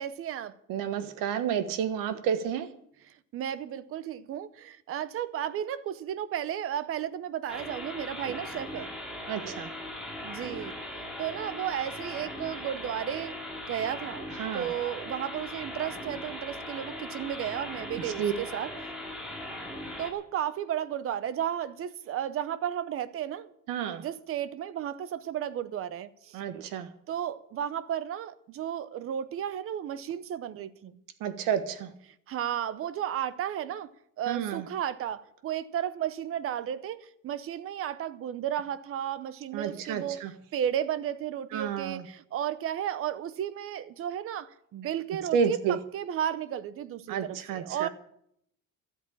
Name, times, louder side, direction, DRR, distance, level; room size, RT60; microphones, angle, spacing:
voice 1, 0.0-0.5 3.1-8.9 10.2-13.4 13.7-14.3 14.5-18.9 20.0-23.5 24.0-26.4 27.1-31.0 32.1-33.9 34.2-47.9, right 10 dB, 45° right, 0.8 m, -34 dB
voice 2, 0.7-2.7 8.3-8.4 9.3-9.7 14.4-14.7 18.0-18.3 23.7-24.0 26.3-26.9 31.2-31.9 34.3-34.6 39.5-40.3 41.5-42.0 45.3-45.8 47.1-47.9, right 8 dB, 85° right, 1.4 m, -30 dB
sound 1, 7.5-20.1, left 1 dB, 5° right, 2.2 m, -39 dB
13.0 x 8.6 x 8.6 m
cardioid pair, 175°, 32 cm